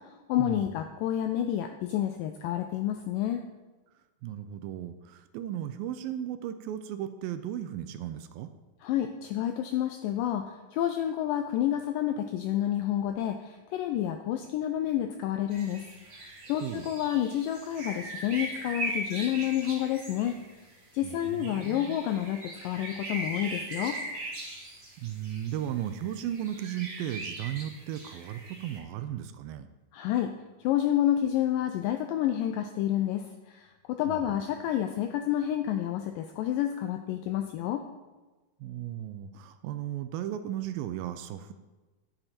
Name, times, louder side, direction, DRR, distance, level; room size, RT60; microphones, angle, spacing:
voice 1, 0.3-3.4 8.8-15.8 16.1-20.4 20.9-24.0 29.9-30.3 30.6-37.8, left 11 dB, 80° left, 7 dB, 2.0 m, -29 dB
voice 2, 4.2-8.5 16.6-16.9 21.0-22.0 25.0-29.7 34.1-34.2 38.6-41.5, right 11 dB, 80° right, 10 dB, 2.3 m, -35 dB
sound 1, 15.5-28.8, right 1 dB, 35° right, 1.8 m, -40 dB
10.5 x 8.9 x 4.3 m, 1.2 s
omnidirectional pair, 4.3 m